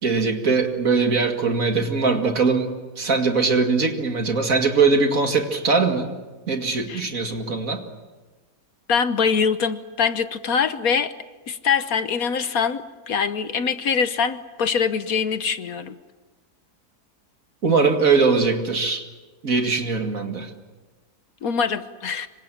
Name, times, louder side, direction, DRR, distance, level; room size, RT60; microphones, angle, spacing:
voice 1, 0.0-6.1 6.5-7.8 17.6-19.1 19.4-20.5, right 4 dB, 55° right, 5 dB, 2.5 m, -21 dB
voice 2, 8.9-11.1 11.5-16.0 21.4-22.3, left 6 dB, 65° left, 11 dB, 1.4 m, -23 dB
26.0 x 24.5 x 7.5 m, 1.3 s
omnidirectional pair, 1.7 m